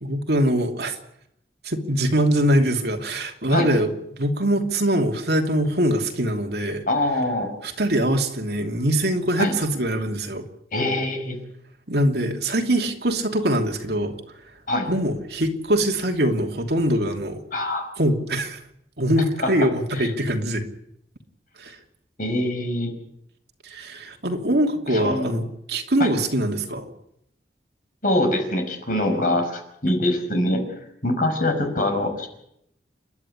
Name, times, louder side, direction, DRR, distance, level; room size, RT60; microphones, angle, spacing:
voice 1, 0.0-0.9 1.6-3.9 4.2-6.9 7.6-10.4 11.9-14.2 14.9-17.4 18.0-18.6 19.0-20.6 21.6-21.8 23.6-26.9, right 1 dB, 65° right, 3 dB, 2.9 m, -23 dB
voice 2, 6.9-7.5 9.4-9.5 10.7-11.4 14.7-14.9 17.5-17.9 19.4-19.5 19.9-20.1 22.2-22.9 24.9-25.3 26.0-26.1 28.0-30.7 31.0-32.3, left 1 dB, 50° left, 5 dB, 5.4 m, -24 dB
29.5 x 12.0 x 9.9 m, 0.78 s
head